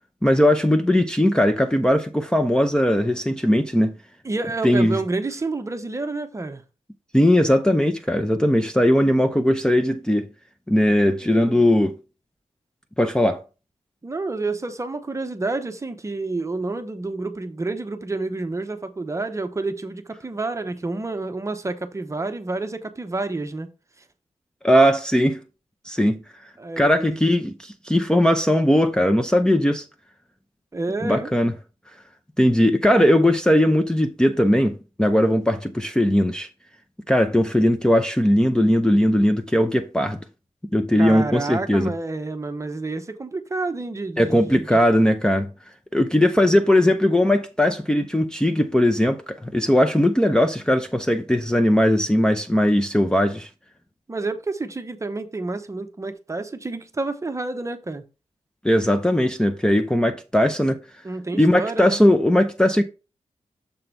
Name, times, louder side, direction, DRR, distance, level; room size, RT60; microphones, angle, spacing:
voice 1, 0.2-4.0 4.6-5.0 7.1-10.3 10.7-12.0 13.0-13.4 24.6-25.4 25.9-26.2 26.8-29.9 31.0-31.5 32.4-36.5 37.1-40.2 40.7-41.9 44.2-45.5 45.9-53.5 58.6-60.8 61.4-62.8, left 1 dB, 5° left, 0.6 m, -19 dB
voice 2, 4.2-6.6 11.2-11.7 14.0-23.7 26.6-27.2 30.7-31.3 41.0-44.8 54.1-58.0 61.0-62.0, right 3 dB, 25° right, 0.8 m, -29 dB
6.9 x 3.8 x 4.4 m
wide cardioid pair, 120°, 12 cm